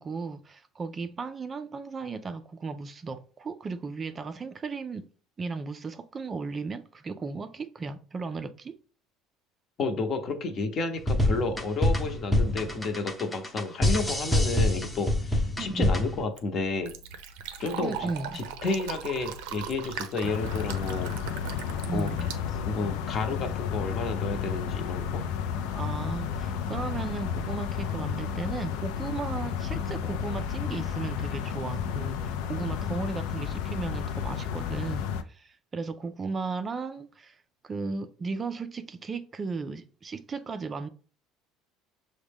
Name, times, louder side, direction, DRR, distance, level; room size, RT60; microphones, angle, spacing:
voice 1, 0.0-5.1 5.4-8.8 15.6-16.0 17.8-18.4 21.8-22.3 25.7-40.9, right 4 dB, 25° right, 0.3 m, -35 dB
voice 2, 9.8-16.9 17.6-21.1 21.9-22.1 22.6-25.2, left 3 dB, 40° left, 0.8 m, -31 dB
sound 1, 11.0-16.2, left 1 dB, 5° left, 0.7 m, -25 dB
Fill (with liquid), 16.1-23.2, right 7 dB, 85° right, 0.5 m, -40 dB
sound 2, 20.2-35.2, left 7 dB, 80° left, 0.4 m, -32 dB
5.9 x 2.1 x 3.4 m
cardioid pair, 125°, 0 cm